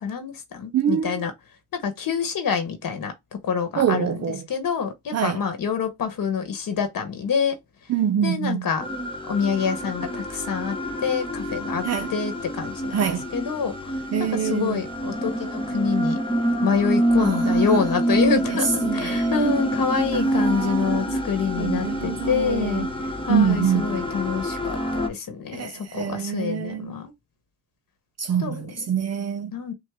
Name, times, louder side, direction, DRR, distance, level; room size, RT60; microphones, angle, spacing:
voice 1, 0.0-1.3 1.8-3.1 3.4-4.1 4.5-7.6 8.2-8.8 9.3-10.8 11.0-11.8 12.1-13.1 13.3-13.9 14.2-16.2 16.6-22.9 23.3-27.1 28.4-28.8 29.5-29.7, left 6 dB, 80° left, 1.0 m, -26 dB
voice 2, 0.7-1.3 3.8-4.4 5.1-5.4 7.9-8.7 11.8-12.1 12.9-13.3 14.1-14.8 17.2-17.7 18.2-19.3 20.1-22.9 23.3-24.0 25.5-27.0 28.2-29.5, right 8 dB, 50° right, 0.4 m, -26 dB
sound 1, 8.8-25.1, equal, 15° left, 0.9 m, -27 dB
6.3 x 2.1 x 3.5 m
wide cardioid pair, 130°, 33 cm